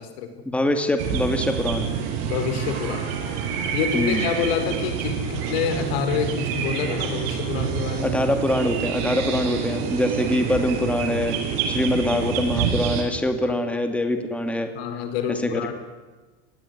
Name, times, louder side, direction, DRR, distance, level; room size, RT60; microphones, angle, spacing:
voice 1, 0.5-1.9 3.9-4.2 8.0-11.4 11.7-14.7 15.3-15.6, left 1 dB, 5° left, 6 dB, 2.4 m, -24 dB
sound 1, 1.0-13.0, right 7 dB, 65° right, 7.9 m, -27 dB
voice 2, 2.3-3.1 3.7-8.1 9.7-9.8 13.5-13.6 14.7-15.7, left 7 dB, 85° left, 9 dB, 4.9 m, -27 dB
29.5 x 19.5 x 9.9 m, 1.3 s
cardioid pair, 160°, 30 cm